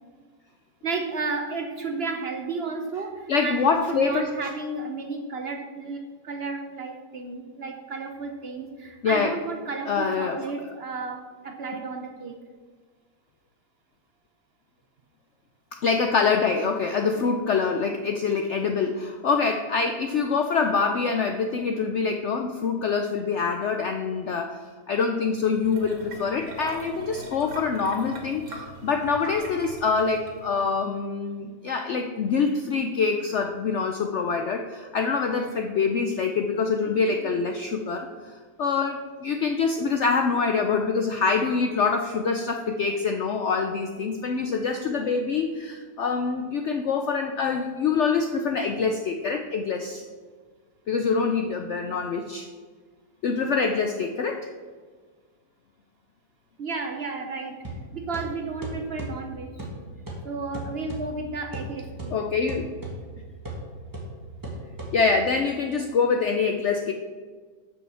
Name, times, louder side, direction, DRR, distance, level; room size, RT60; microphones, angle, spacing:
voice 1, 0.8-3.6 3.9-12.4 37.1-37.3 56.6-57.6 57.9-59.7 60.2-62.1, right 3 dB, 55° right, 4 dB, 0.7 m, -33 dB
voice 2, 3.3-4.2 9.0-9.3 9.9-10.4 15.8-24.6 24.9-50.0 50.9-52.5 53.2-54.5 62.1-62.7 64.9-66.9, left 5 dB, 75° left, 5 dB, 0.6 m, -25 dB
sound 1, 25.6-30.6, right 1 dB, 80° right, 2.0 m, -41 dB
sound 2, 57.6-65.4, right 1 dB, 10° right, 1.4 m, -38 dB
6.4 x 5.5 x 6.9 m, 1.5 s
omnidirectional pair, 1.8 m